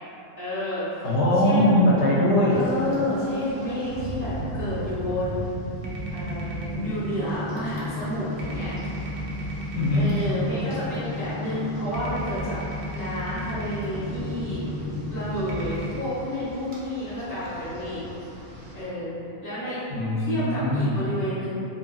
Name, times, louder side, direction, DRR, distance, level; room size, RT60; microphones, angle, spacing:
voice 1, 0.4-1.1 1.4-1.9 2.5-5.7 6.1-8.7 9.9-12.6 12.9-14.6 15.1-18.0 18.7-19.1 19.4-19.8 20.2-21.6, left 1 dB, 20° left, -15 dB, 0.6 m, -30 dB
voice 2, 1.0-2.7 9.7-10.2 19.9-21.0, left 1 dB, 65° left, -6 dB, 0.8 m, -21 dB
Rain, 2.5-18.8, right 1 dB, 50° right, 0.6 m, -39 dB
Univox Drum Machine, 5.8-15.9, left 1 dB, 85° right, 1.0 m, -33 dB
2.7 x 2.4 x 2.3 m, 2.8 s
omnidirectional pair, 1.4 m